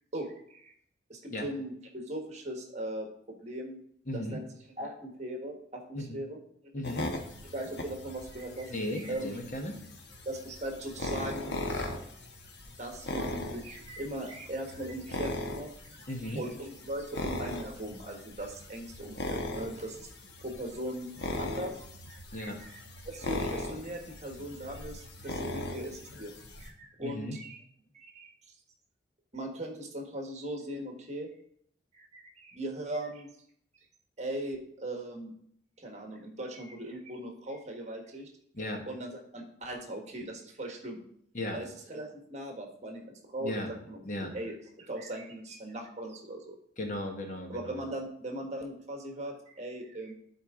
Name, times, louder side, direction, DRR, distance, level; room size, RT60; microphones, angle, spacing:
voice 1, 0.1-0.7 1.1-3.8 4.1-4.4 4.8-5.8 6.1-6.4 7.5-9.4 10.2-11.5 12.8-20.1 20.4-21.1 21.4-21.8 22.1-22.8 23.0-26.3 26.6-27.6 27.9-28.3 29.3-31.3 31.9-33.3 34.2-35.3 35.8-38.3 38.9-41.0 41.5-44.0 44.3-46.5 47.5-50.2, right 1 dB, 35° right, 2 dB, 1.4 m, -39 dB
voice 2, 4.1-4.4 5.9-6.2 6.7-7.1 8.7-9.7 16.1-16.4 22.3-22.6 27.0-27.4 38.5-38.8 41.3-41.6 43.4-43.7 44.0-44.3 46.8-47.8, left 1 dB, 40° left, 3 dB, 1.1 m, -36 dB
sound 1, 6.8-26.7, left 1 dB, 65° left, 1.0 m, -39 dB
11.5 x 4.5 x 3.7 m, 0.67 s
head